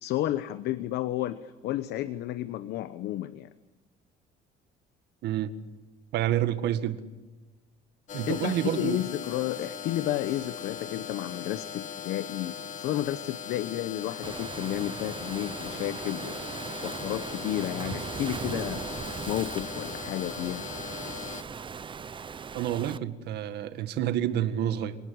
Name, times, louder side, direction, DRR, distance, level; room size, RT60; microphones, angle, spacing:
voice 1, 0.0-3.5 8.3-18.8 19.3-20.7, left 13 dB, 80° left, 13 dB, 1.0 m, -32 dB
voice 2, 6.1-7.0 8.1-9.0 22.5-25.0, right 11 dB, 80° right, 11 dB, 1.9 m, -28 dB
sound 1, 8.1-21.4, left 8 dB, 50° left, 1.8 m, -39 dB
Waves surf, 14.2-23.0, right 6 dB, 30° right, 0.8 m, -38 dB
27.5 x 19.0 x 8.6 m, 1.2 s
cardioid pair, 110°, 17 cm